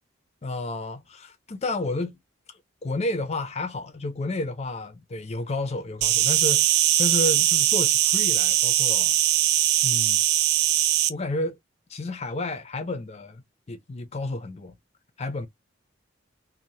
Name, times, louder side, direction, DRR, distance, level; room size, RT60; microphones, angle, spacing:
voice 1, 0.4-2.2 2.5-9.2 9.8-10.2 11.1-11.6 11.9-14.7 15.2-15.5, left 2 dB, 35° left, 0.5 m, -31 dB
Insect, 6.0-11.1, right 13 dB, 55° right, 0.3 m, -21 dB
2.6 x 2.1 x 3.0 m
head